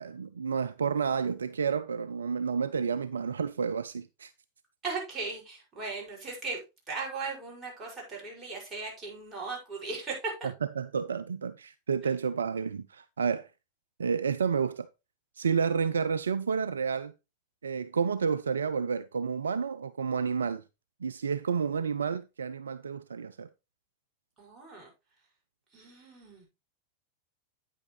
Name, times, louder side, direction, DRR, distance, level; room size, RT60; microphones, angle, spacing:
voice 1, 0.0-4.3 10.8-13.5 14.0-14.9 15.4-17.1 17.6-20.6 21.0-23.5, right 6 dB, 70° right, 0.4 m, -30 dB
voice 2, 4.8-6.6 6.9-10.3 24.4-24.9 25.7-26.5, right 4 dB, 25° right, 5.7 m, -37 dB
9.2 x 8.4 x 3.1 m
figure-of-eight pair, 90°, 0 cm